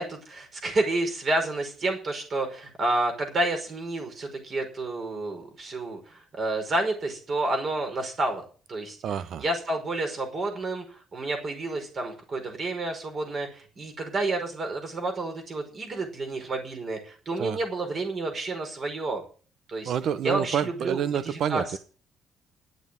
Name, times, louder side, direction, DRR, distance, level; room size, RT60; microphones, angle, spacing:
voice 1, 0.0-8.4 8.7-9.0 9.4-19.2 19.7-19.9 20.2-21.8, right 2 dB, 40° right, 5.2 m, -30 dB
voice 2, 9.0-9.4 17.4-17.6 19.8-21.8, right 8 dB, 60° right, 1.0 m, -28 dB
11.0 x 8.0 x 9.4 m
cardioid pair, 135°, 0 cm